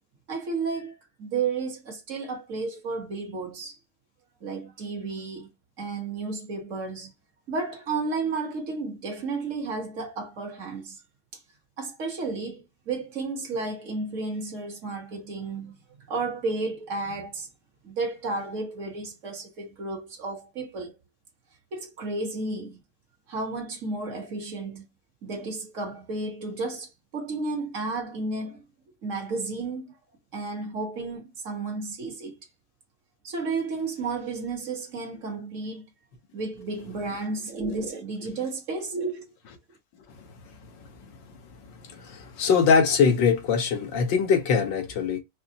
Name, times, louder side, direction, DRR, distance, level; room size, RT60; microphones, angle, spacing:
voice 1, 0.3-3.8 4.4-5.5 5.8-7.1 7.5-11.0 11.3-11.4 11.8-15.8 16.1-17.5 17.8-20.9 21.7-22.8 23.3-24.8 25.2-28.6 29.0-29.9 30.3-32.4 33.2-35.8 36.3-39.3, right 3 dB, 45° right, 1.5 m, -32 dB
voice 2, 40.2-41.1 41.5-45.2, left 6 dB, 85° left, 1.7 m, -23 dB
5.4 x 2.0 x 2.8 m
omnidirectional pair, 2.0 m